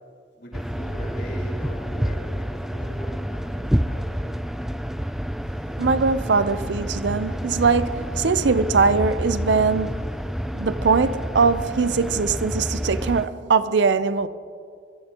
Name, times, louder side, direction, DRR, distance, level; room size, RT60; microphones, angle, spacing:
voice 1, 0.4-4.5, equal, 60° left, 4.2 m, -40 dB
sound 1, 0.5-13.3, equal, ahead, 0.3 m, -28 dB
voice 2, 5.8-10.1 10.5-14.3, right 4 dB, 70° right, 0.5 m, -21 dB
22.0 x 13.5 x 2.9 m
head